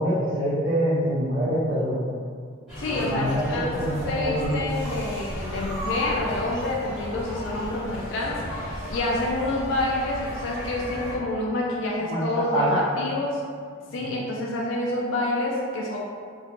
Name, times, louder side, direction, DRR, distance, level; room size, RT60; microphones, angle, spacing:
voice 1, 0.0-2.0 2.9-4.5 12.1-12.8 14.0-14.1, equal, 45° right, -10 dB, 0.9 m, -25 dB
sound 1, 2.7-11.1, equal, 5° right, 0.8 m, -34 dB
voice 2, 2.8-3.8 4.0-13.4 13.9-16.0, left 2 dB, 60° left, -3 dB, 0.3 m, -28 dB
3.1 x 2.1 x 2.5 m, 2.1 s
head